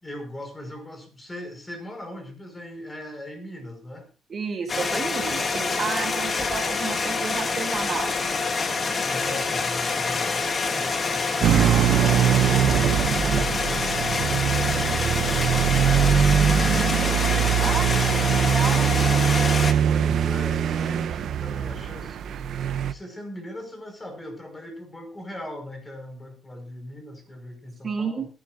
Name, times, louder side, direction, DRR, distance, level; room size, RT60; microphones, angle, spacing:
voice 1, 0.0-4.1 9.0-12.1 12.6-14.4 14.6-17.2 19.8-28.3, left 1 dB, 20° left, 6 dB, 5.4 m, -39 dB
voice 2, 4.3-8.1 17.6-19.1 27.8-28.3, right 5 dB, 45° right, 4 dB, 2.4 m, -31 dB
sound 1, 4.7-19.7, left 4 dB, 40° left, 1.9 m, -26 dB
sound 2, 11.4-22.9, right 9 dB, 70° right, 0.8 m, -22 dB
21.0 x 11.0 x 2.5 m, 0.33 s
cardioid pair, 90°, 0 cm